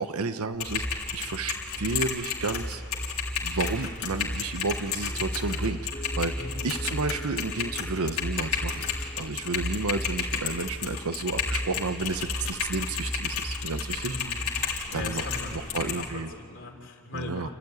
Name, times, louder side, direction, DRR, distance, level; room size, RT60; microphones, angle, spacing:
voice 1, 0.0-2.8 3.4-6.3 6.6-8.9 9.1-14.2 14.9-15.3 15.5-16.3 17.1-17.5, right 3 dB, 80° right, 11 dB, 0.9 m, -31 dB
Typing, 0.5-16.1, left 4 dB, 90° left, 3.6 m, -32 dB
sound 1, 3.2-3.4 4.9-16.2, left 2 dB, 30° left, 1.8 m, -50 dB
voice 2, 6.4-6.8 14.0-14.5 14.9-17.5, left 2 dB, 60° left, 1 dB, 3.5 m, -39 dB
29.0 x 13.5 x 9.6 m, 2.2 s
head